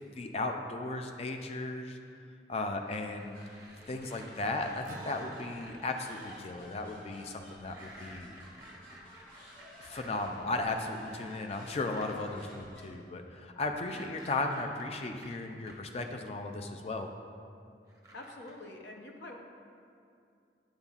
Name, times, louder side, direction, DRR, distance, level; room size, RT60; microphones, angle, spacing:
voice 1, 0.2-2.0 2.5-3.4 3.9-8.4 9.8-17.1, left 2 dB, 35° left, 4 dB, 0.3 m, -36 dB
sound 1, 2.8-6.4 7.6-12.2 13.7-15.7 16.9-17.0 17.9-18.5, right 1 dB, 20° right, 0.7 m, -53 dB
sound 2, 3.3-12.9, equal, 10° left, 1.5 m, -54 dB
Acoustic guitar, 4.8-9.7, right 2 dB, 50° right, 0.5 m, -54 dB
voice 2, 18.1-19.4, left 2 dB, 80° left, 1 dB, 0.7 m, -46 dB
8.8 x 5.4 x 2.4 m, 2.4 s
head